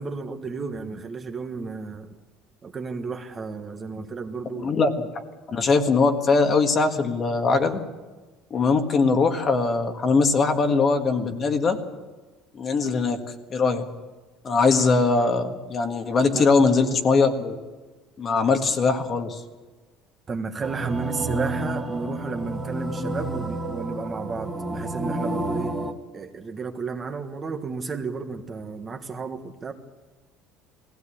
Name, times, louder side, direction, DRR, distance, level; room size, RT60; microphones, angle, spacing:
voice 1, 0.0-2.1 2.6-4.7 16.3-16.5 20.3-25.7 26.1-29.7, right 4 dB, 25° right, 6 dB, 1.4 m, -32 dB
voice 2, 4.6-4.9 5.5-7.8 8.5-11.8 12.5-13.2 13.5-13.8 14.4-17.6 18.2-19.4, left 4 dB, 30° left, 6 dB, 1.6 m, -21 dB
sound 1, 20.6-25.9, right 2 dB, 5° right, 2.1 m, -30 dB
20.5 x 16.5 x 8.6 m, 1.3 s
cardioid pair, 150°, 0 cm